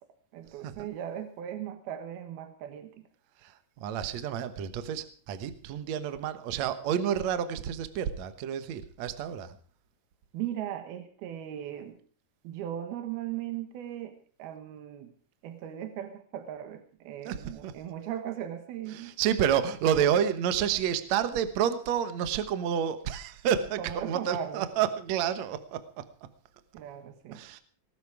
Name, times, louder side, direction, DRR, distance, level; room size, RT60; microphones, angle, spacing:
voice 1, 0.3-3.1 10.3-12.0 12.4-15.1 15.4-19.2 23.8-24.7 26.7-27.4, right 11 dB, 80° right, 7 dB, 3.3 m, -38 dB
voice 2, 3.4-9.6 17.2-17.8 18.9-26.1 27.3-27.6, right 9 dB, 60° right, 10 dB, 2.0 m, -29 dB
19.0 x 13.0 x 4.8 m, 0.43 s
omnidirectional pair, 4.4 m